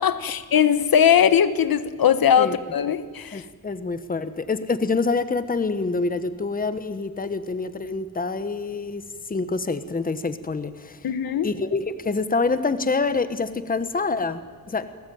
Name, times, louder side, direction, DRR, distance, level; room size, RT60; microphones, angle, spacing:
voice 1, 0.0-3.4 11.0-11.5, left 8 dB, 85° left, 12 dB, 1.4 m, -20 dB
voice 2, 3.3-11.1 11.4-14.9, left 4 dB, 25° left, 12 dB, 1.2 m, -26 dB
30.0 x 20.5 x 9.4 m, 1.4 s
wide cardioid pair, 175°, 34 cm